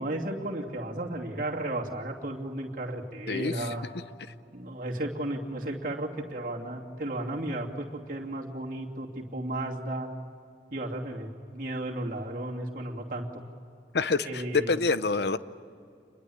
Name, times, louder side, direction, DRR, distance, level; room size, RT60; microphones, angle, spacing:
voice 1, 0.0-3.9 4.5-10.1 10.7-13.4 14.2-14.8, right 1 dB, 45° right, 0 dB, 2.8 m, -34 dB
voice 2, 3.3-3.7 13.9-15.4, left 4 dB, 70° left, 14 dB, 0.8 m, -27 dB
27.5 x 22.0 x 8.6 m, 2.4 s
head